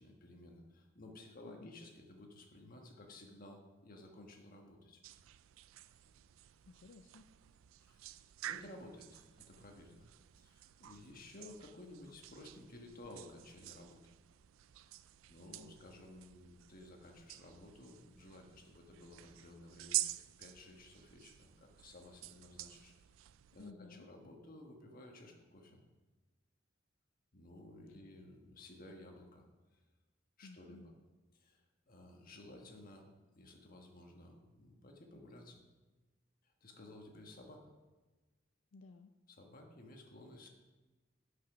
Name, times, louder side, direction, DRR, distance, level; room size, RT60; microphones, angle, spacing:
voice 1, 0.0-5.0 7.8-8.1 8.4-10.1 10.4-14.0 15.3-22.9 23.5-25.8 27.3-29.4 29.7-29.8 30.4-30.9 31.3-33.1 33.3-35.6 36.4-37.7 39.3-40.5, left 1 dB, 45° left, 2 dB, 1.4 m, -55 dB
sound 1, 5.0-23.7, right 15 dB, 80° right, 0.3 m, -48 dB
voice 2, 6.7-7.3 23.6-24.1 30.4-30.9 38.7-39.1, left 3 dB, 80° left, 7 dB, 0.5 m, -55 dB
8.9 x 6.0 x 6.1 m, 1.2 s
head